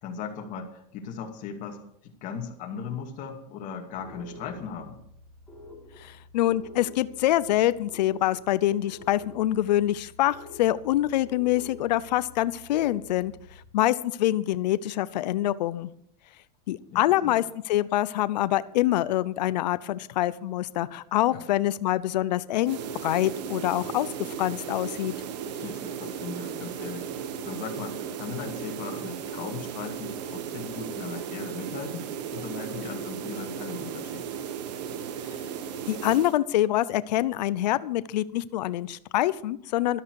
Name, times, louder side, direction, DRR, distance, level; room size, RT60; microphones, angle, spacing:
voice 1, 0.0-5.0 16.9-17.4 21.3-21.5 25.6-34.3, left 6 dB, 35° left, 2 dB, 2.5 m, -38 dB
sound 1, 3.9-13.7, left 1 dB, 5° left, 3.7 m, -48 dB
voice 2, 6.0-13.3 13.7-15.9 16.7-24.1 24.4-25.1 35.9-40.0, left 14 dB, 90° left, 16 dB, 0.6 m, -25 dB
sound 2, 22.6-36.4, right 8 dB, 80° right, 1.3 m, -36 dB
13.0 x 12.5 x 4.8 m, 0.70 s
supercardioid pair, 155°, 21 cm